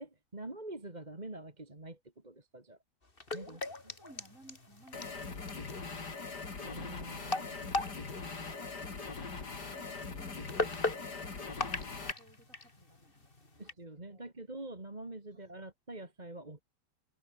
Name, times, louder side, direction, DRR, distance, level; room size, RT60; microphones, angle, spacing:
voice 1, 0.0-2.8 3.3-3.9 6.6-7.8 9.9-10.0 13.6-16.6, right 2 dB, 20° right, 2.7 m, -46 dB
sound 1, 3.0-13.7, left 3 dB, 25° left, 3.0 m, -40 dB
voice 2, 3.4-6.4 7.6-13.8 14.1-14.3 15.3-15.4, right 2 dB, 40° right, 7.4 m, -62 dB
sound 2, 4.9-12.1, left 4 dB, 50° left, 3.8 m, -41 dB
omnidirectional pair, 2.2 m